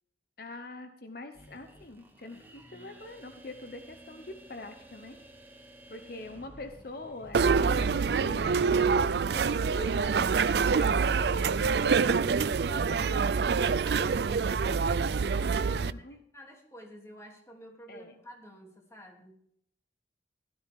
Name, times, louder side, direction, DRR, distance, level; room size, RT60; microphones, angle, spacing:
voice 1, 0.4-5.2 5.9-11.6 11.8-13.6 15.7-16.2 17.9-18.1, left 2 dB, 55° left, 7 dB, 1.0 m, -44 dB
sound 1, 1.3-14.9, equal, 10° right, 2.1 m, -53 dB
sound 2, 7.3-15.9, right 5 dB, 65° right, 0.4 m, -26 dB
voice 2, 13.8-19.4, equal, 15° left, 0 dB, 2.8 m, -50 dB
16.5 x 13.0 x 3.6 m, 0.68 s
head